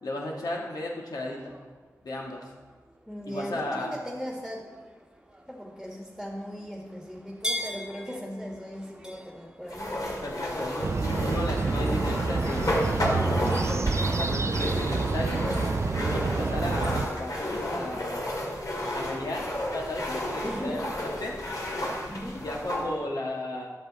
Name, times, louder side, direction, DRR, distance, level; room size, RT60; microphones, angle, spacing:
voice 1, 0.0-1.5 2.0-2.5 3.3-4.0 10.2-13.9 14.1-15.4 16.0-18.2 18.9-21.4 22.3-23.7, left 1 dB, 80° left, -1 dB, 1.5 m, -34 dB
sound 1, 1.4-11.1, equal, 10° right, 1.2 m, -42 dB
voice 2, 3.1-4.6 5.5-10.7 16.1-16.7 20.4-20.9 22.1-22.4, equal, 5° left, -2 dB, 1.6 m, -38 dB
sound 2, 9.7-22.9, left 1 dB, 65° left, 2.2 m, -32 dB
sound 3, 10.8-17.0, right 4 dB, 45° right, 0.4 m, -28 dB
11.5 x 6.7 x 4.1 m, 1.4 s
wide cardioid pair, 60°, 6 cm